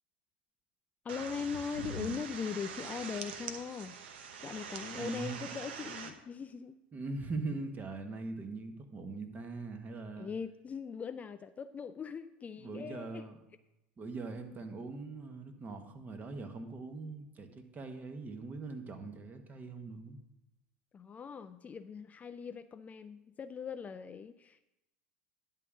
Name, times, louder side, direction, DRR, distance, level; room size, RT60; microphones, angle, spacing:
voice 1, 1.0-4.0 4.4-6.8 10.2-13.2 20.9-24.6, left 6 dB, 25° left, 12 dB, 0.4 m, -40 dB
sound 1, 1.1-6.1, right 6 dB, 75° right, 0.9 m, -43 dB
voice 2, 5.0-5.5 6.9-10.3 12.6-13.4 14.0-20.2, right 3 dB, 30° right, 7 dB, 1.4 m, -41 dB
10.5 x 3.8 x 7.3 m, 0.93 s
hypercardioid pair, 85°, 6 cm